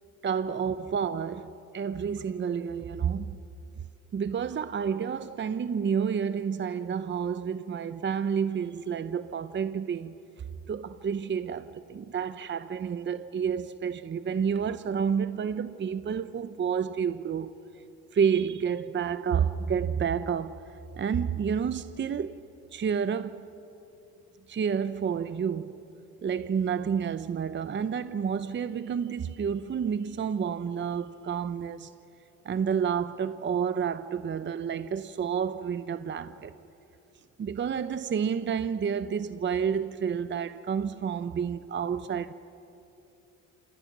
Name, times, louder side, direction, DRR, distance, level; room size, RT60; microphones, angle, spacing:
voice 1, 0.2-3.4 4.1-10.2 10.7-17.5 18.1-20.6 21.0-22.3 22.7-23.5 24.5-25.7 26.2-31.9 32.4-36.5 37.4-42.3, right 7 dB, 40° right, 0.8 m, -30 dB
28.0 x 27.5 x 6.1 m
cardioid pair, 90°, 30 cm